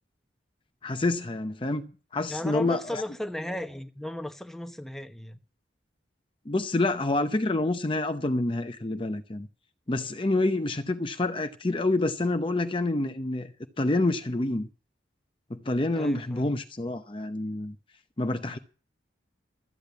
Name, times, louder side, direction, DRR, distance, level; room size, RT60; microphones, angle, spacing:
voice 1, 0.8-1.9 2.1-3.0 6.5-9.5 9.9-13.5 13.8-14.7 15.5-17.7 18.2-18.6, left 2 dB, 30° left, 0.7 m, -27 dB
voice 2, 2.3-5.4 15.9-16.5, left 1 dB, ahead, 0.9 m, -35 dB
13.5 x 8.7 x 8.2 m
head